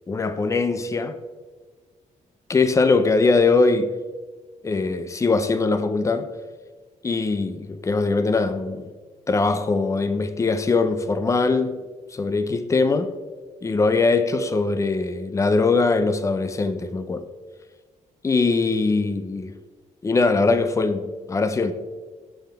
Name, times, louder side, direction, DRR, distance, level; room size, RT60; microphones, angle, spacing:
voice 1, 0.1-1.2 2.5-3.9 4.6-6.3 7.0-8.9 9.3-11.8 12.1-13.1 13.6-17.3 18.2-19.6 20.0-21.7, left 3 dB, 25° left, 0.6 m, -21 dB
17.0 x 5.7 x 3.5 m
wide cardioid pair, 160°, 13 cm